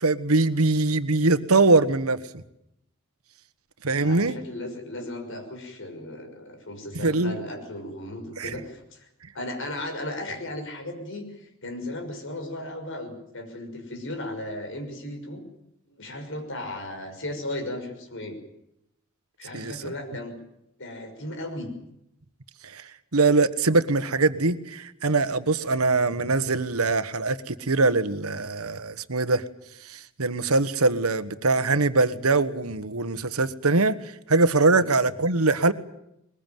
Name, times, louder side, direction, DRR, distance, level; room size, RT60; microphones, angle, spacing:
voice 1, 0.0-2.4 3.8-4.4 6.9-7.4 8.4-8.5 19.5-19.9 22.6-22.8 23.1-29.4 29.9-34.0 34.3-35.7, right 3 dB, 90° right, 13 dB, 1.4 m, -22 dB
voice 2, 4.0-9.1 9.3-15.4 16.0-18.4 19.4-20.3 20.8-21.7 34.7-34.9, left 1 dB, 60° left, 5 dB, 6.1 m, -36 dB
21.5 x 21.0 x 9.3 m, 0.80 s
head